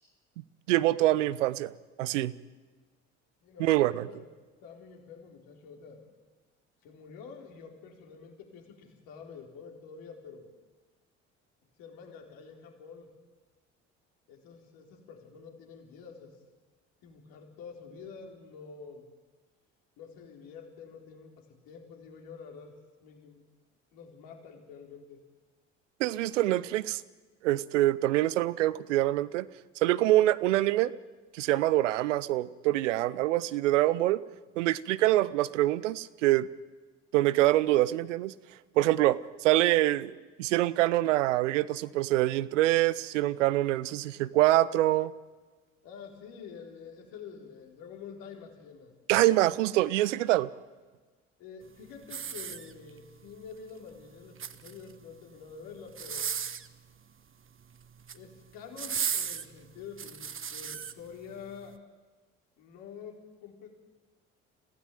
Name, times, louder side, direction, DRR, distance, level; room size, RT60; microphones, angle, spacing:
voice 1, 0.7-1.7 2.0-2.3 3.6-4.0 26.0-27.0 27.4-29.5 29.8-30.9 31.3-34.2 34.6-36.5 37.1-38.3 38.8-45.1 49.1-50.5, right 16 dB, 80° right, 17 dB, 0.8 m, -25 dB
voice 2, 3.4-4.3 4.6-6.0 6.8-10.5 11.8-13.1 14.3-16.4 17.0-19.0 20.0-23.4 23.9-25.2 45.8-48.9 51.4-56.3 58.1-61.8 62.6-63.7, left 6 dB, 70° left, 2 dB, 4.1 m, -47 dB
sound 1, 52.0-53.1 54.2-55.0 55.9-56.7 57.8-58.2 58.8-60.9 61.5-61.7, right 7 dB, 35° right, 1.3 m, -35 dB
27.0 x 16.0 x 9.2 m, 1.3 s
hypercardioid pair, 55°, 36 cm